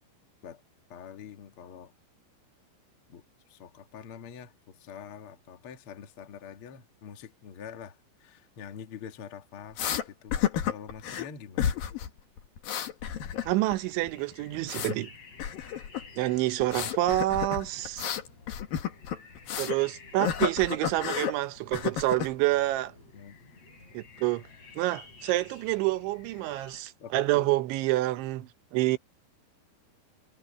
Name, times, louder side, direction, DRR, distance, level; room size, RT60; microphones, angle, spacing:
voice 1, 0.9-1.9 3.1-3.2 3.5-10.3 10.7-11.8 23.1-23.4 27.0-27.5, left 7 dB, 85° left, 1.2 m, -45 dB
sound 1, 9.8-10.0 10.3-11.3 11.6-12.1 12.4-13.7 14.0-15.0 15.4-16.1 16.6-19.8 20.2-21.3 21.7-22.3, left 9 dB, 55° left, 3.1 m, -31 dB
sound 2, 13.1-26.8, left 4 dB, 35° left, 6.4 m, -53 dB
voice 2, 13.5-15.1 16.2-18.1 19.6-22.9 23.9-24.4 24.8-29.0, right 17 dB, 75° right, 3.2 m, -28 dB
omnidirectional pair, 5.7 m